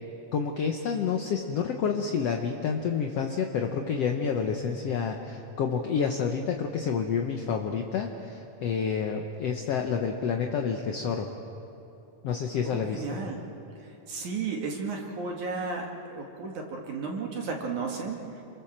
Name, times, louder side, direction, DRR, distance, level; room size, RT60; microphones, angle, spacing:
voice 1, 0.3-11.3 12.2-13.2, left 6 dB, 70° left, 3 dB, 1.5 m, -29 dB
voice 2, 12.6-13.4 13.8-18.4, right 4 dB, 60° right, 1 dB, 3.1 m, -34 dB
28.0 x 24.0 x 7.4 m, 3.0 s
omnidirectional pair, 4.3 m